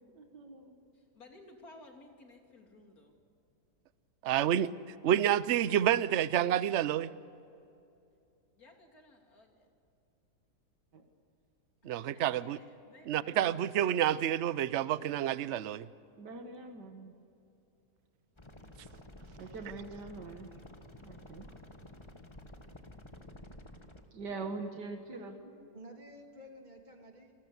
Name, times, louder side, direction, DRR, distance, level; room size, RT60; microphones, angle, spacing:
voice 1, 0.1-0.8 10.9-11.0 16.2-17.1 19.4-20.6 21.0-21.6 24.1-25.4, right 3 dB, 90° right, 5 dB, 2.3 m, -43 dB
voice 2, 0.9-3.2 8.5-9.7 11.8-13.7, left 2 dB, 60° left, 2 dB, 3.6 m, -57 dB
voice 3, 4.2-4.7 5.0-7.1 11.8-12.6 13.1-15.9, right 11 dB, 55° right, 16 dB, 0.8 m, -29 dB
sound 1, 18.4-24.0, left 1 dB, 20° left, 1.5 m, -51 dB
voice 4, 25.1-27.3, equal, 25° right, 2 dB, 2.9 m, -52 dB
28.5 x 20.0 x 8.2 m, 2.6 s
omnidirectional pair, 1.8 m